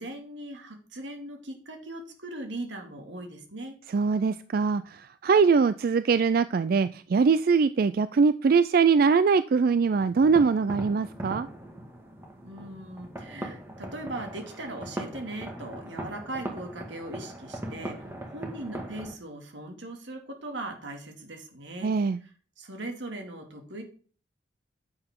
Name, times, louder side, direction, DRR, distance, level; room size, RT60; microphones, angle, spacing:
voice 1, 0.0-3.8 12.4-21.9 22.2-23.8, right 1 dB, 85° right, 3 dB, 2.4 m, -39 dB
voice 2, 3.9-11.5 21.8-22.2, right 5 dB, 50° right, 13 dB, 0.4 m, -22 dB
sound 1, 9.8-19.1, right 1 dB, 15° right, 1.7 m, -40 dB
10.0 x 7.9 x 3.7 m, 0.40 s
head